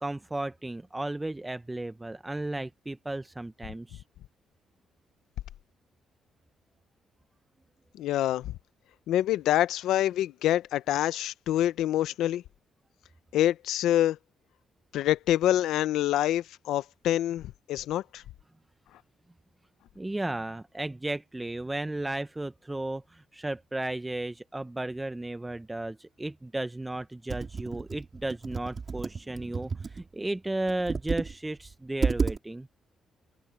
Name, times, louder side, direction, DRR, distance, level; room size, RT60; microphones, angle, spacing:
voice 1, 0.0-4.0 20.0-32.7, right 2 dB, 15° right, 0.7 m, -34 dB
voice 2, 7.9-8.6 9.1-12.4 13.3-14.2 14.9-18.2, left 13 dB, 85° left, 0.7 m, -26 dB
Computer keyboard, 27.3-30.0 30.7-31.3 31.6-31.7 32.0-32.4, right 5 dB, 40° right, 3.8 m, -31 dB
cardioid pair, 90°, 0 cm